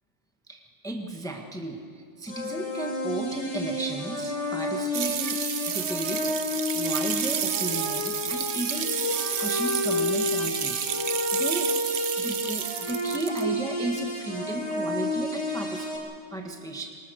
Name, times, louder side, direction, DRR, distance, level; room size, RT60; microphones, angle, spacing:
voice 1, 0.5-5.4 5.7-8.9 9.4-11.7 12.2-16.9, right 1 dB, 5° left, 2 dB, 1.6 m, -34 dB
sound 1, 2.3-16.0, left 1 dB, 60° left, 5.0 m, -30 dB
sound 2, 4.9-13.4, right 9 dB, 60° right, 1.1 m, -30 dB
25.5 x 21.0 x 6.6 m, 2.2 s
omnidirectional pair, 1.5 m